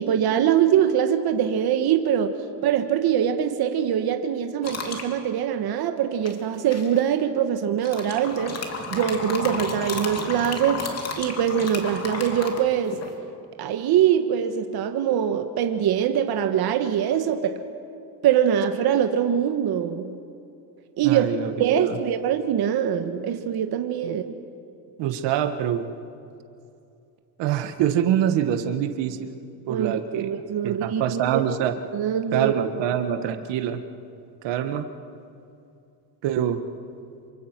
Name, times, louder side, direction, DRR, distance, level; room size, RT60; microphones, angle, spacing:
voice 1, 0.0-2.3 2.6-10.8 11.2-12.9 13.6-17.6 18.2-20.2 21.0-21.2 21.6-24.3 29.7-31.4 31.9-32.5, right 9 dB, 60° right, 7 dB, 1.5 m, -23 dB
sound 1, 4.6-5.1 6.2-7.0 7.8-13.1, left 4 dB, 35° left, 3.2 m, -32 dB
voice 2, 21.0-22.0 24.0-24.2 25.0-25.9 27.4-29.4 29.7-30.3 30.6-31.7 32.3-33.8 34.4-34.9 36.2-36.6, right 10 dB, 80° right, 8 dB, 1.7 m, -25 dB
28.0 x 24.5 x 6.1 m, 2.6 s
cardioid pair, 115°, 42 cm